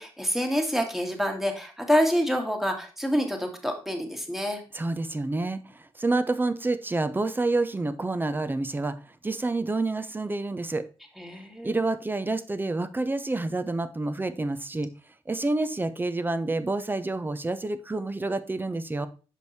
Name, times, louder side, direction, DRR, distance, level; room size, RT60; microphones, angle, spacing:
voice 1, 0.0-4.6 11.2-11.9, equal, ahead, 3 dB, 1.8 m, -27 dB
voice 2, 4.7-10.8 11.6-14.9 15.3-19.1, right 2 dB, 20° right, 11 dB, 0.7 m, -28 dB
6.5 x 5.2 x 4.1 m, 0.34 s
cardioid pair, 80°, 10 cm